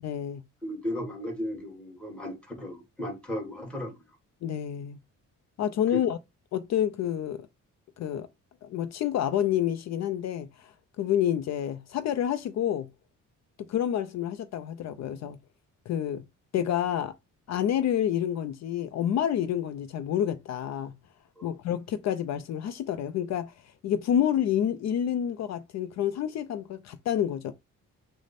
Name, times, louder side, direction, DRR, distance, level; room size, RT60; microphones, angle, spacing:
voice 1, 0.0-0.4 4.4-5.0 5.6-6.2 6.5-7.5 8.0-8.3 8.6-12.9 13.6-15.4 15.9-16.2 16.5-17.2 17.5-20.9 21.4-27.5, left 10 dB, 60° left, 0.4 m, -28 dB
voice 2, 0.6-4.0 5.9-6.0 21.4-21.5, left 1 dB, 5° left, 1.4 m, -35 dB
6.2 x 2.1 x 4.1 m
cardioid pair, 175°, 31 cm